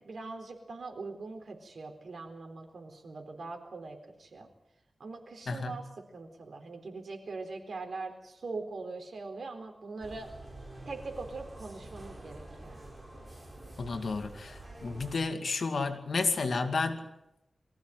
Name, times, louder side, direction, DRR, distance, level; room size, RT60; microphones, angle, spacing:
voice 1, 0.0-4.5 5.0-10.3 10.8-12.8, right 3 dB, 80° right, 4 dB, 4.0 m, -42 dB
sound 1, 10.0-15.1, right 1 dB, 20° right, 6.7 m, -47 dB
voice 2, 13.8-17.0, left 4 dB, 75° left, 6 dB, 2.4 m, -31 dB
24.0 x 15.5 x 9.4 m, 0.88 s
wide cardioid pair, 105°, 0 cm